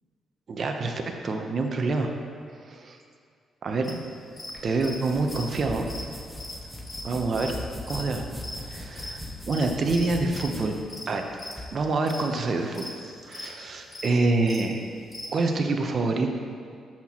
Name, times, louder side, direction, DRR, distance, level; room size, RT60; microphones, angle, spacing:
voice 1, 0.5-2.1 2.6-3.0 3.6-4.0 4.6-5.9 7.0-7.5 7.9-8.3 8.6-9.2 9.5-10.8 11.1-11.2 11.7-14.8 15.3-16.3, right 3 dB, 50° right, 4 dB, 0.9 m, -26 dB
sound 1, 3.8-15.3, left 2 dB, 30° left, 1.8 m, -40 dB
sound 2, 4.5-11.7, left 1 dB, ahead, 1.3 m, -40 dB
13.5 x 5.8 x 3.0 m, 2.2 s
supercardioid pair, 65°, 0 cm